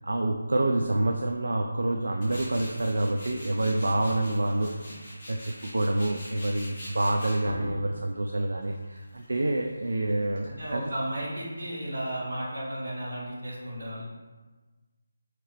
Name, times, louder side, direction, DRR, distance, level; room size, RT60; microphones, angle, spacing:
voice 1, 0.0-4.8 5.1-10.8, right 1 dB, 80° right, 2 dB, 0.3 m, -27 dB
Tools, 2.2-11.0, equal, 15° left, 0.8 m, -44 dB
voice 2, 10.5-14.0, right 1 dB, 65° right, -4 dB, 1.2 m, -34 dB
2.9 x 2.9 x 4.3 m, 1.3 s
figure-of-eight pair, 180°, 0 cm